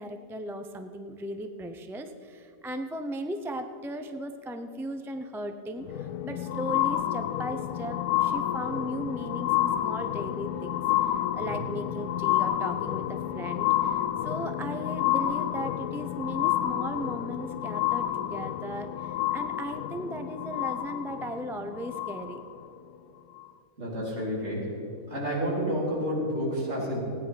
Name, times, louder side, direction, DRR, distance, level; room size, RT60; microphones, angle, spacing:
voice 1, 0.0-22.4, right 1 dB, 5° right, 6 dB, 0.3 m, -37 dB
sound 1, 5.8-22.7 23.4-23.5, left 12 dB, 85° left, 1.1 m, -29 dB
voice 2, 23.8-24.7 25.1-27.0, equal, 50° right, -5 dB, 4.6 m, -30 dB
16.5 x 10.0 x 5.9 m, 2.8 s
omnidirectional pair, 1.5 m